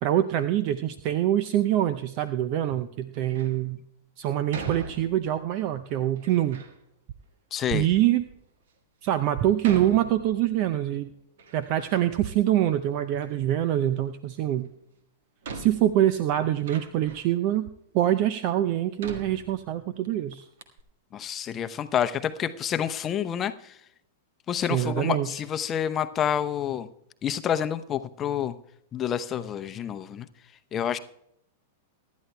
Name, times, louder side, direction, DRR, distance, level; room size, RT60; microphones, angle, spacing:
voice 1, 0.0-3.8 4.2-6.6 7.7-8.3 9.0-11.1 11.5-14.7 15.5-17.7 17.9-20.4 24.7-25.3, right 12 dB, 45° right, 11 dB, 0.6 m, -25 dB
Door, 3.1-3.6 4.5-5.5 6.2-6.8 7.6-7.7 8.3-8.4 9.6-10.8 11.1-12.2 12.5-13.3 14.6-14.7 15.4-17.4 18.1-18.2 19.0-20.1 20.3-20.4 20.6-20.8, right 4 dB, 65° right, 1.6 m, -41 dB
voice 2, 7.5-7.9 21.1-23.8 24.5-26.9 27.2-28.6 28.9-30.3 30.7-31.0, left 9 dB, 30° left, 11 dB, 0.7 m, -28 dB
24.5 x 11.5 x 2.2 m, 0.77 s
figure-of-eight pair, 100°, 0 cm